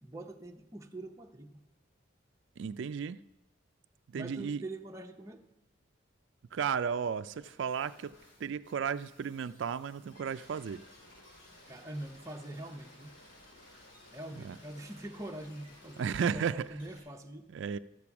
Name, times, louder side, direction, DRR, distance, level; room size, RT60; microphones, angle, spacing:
voice 1, 0.0-1.6 4.1-5.4 11.7-13.2 14.1-17.5, right 1 dB, 15° right, 0.7 m, -44 dB
voice 2, 2.6-3.2 4.1-4.6 6.5-8.1 8.4-10.8 14.4-14.6 16.0-16.7 17.5-17.8, right 7 dB, 65° right, 0.3 m, -34 dB
sound 1, 7.3-17.0, left 1 dB, 70° left, 4.7 m, -57 dB
13.0 x 8.5 x 5.9 m
head